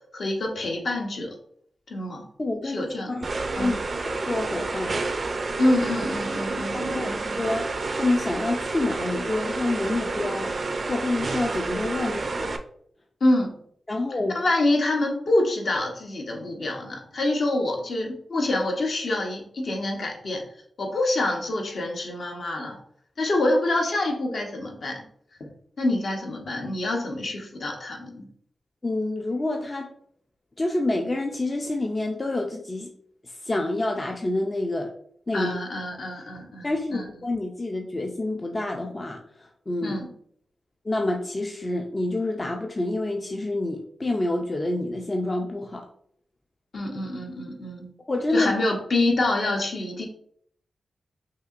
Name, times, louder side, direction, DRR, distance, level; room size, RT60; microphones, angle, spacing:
voice 1, 0.1-1.4 1.9-2.3 2.6-3.2 3.6-3.8 5.6-7.4 13.2-13.6 14.3-20.5 20.8-22.8 23.2-25.0 25.4-25.5 25.8-28.3 35.3-37.1 39.8-40.1 46.7-47.9 48.3-50.1, left 2 dB, 55° left, 1 dB, 0.9 m, -26 dB
voice 2, 2.4-5.0 6.9-7.7 8.0-10.6 10.9-12.6 13.9-14.4 28.8-29.9 30.6-32.9 33.2-34.9 35.3-35.6 36.6-40.0 40.8-45.9 48.1-48.5, left 2 dB, 25° left, 1 dB, 0.4 m, -28 dB
sound 1, 3.2-12.6, right 3 dB, 45° right, 0.4 m, -29 dB
5.4 x 2.9 x 2.4 m, 0.63 s
wide cardioid pair, 135°, 0 cm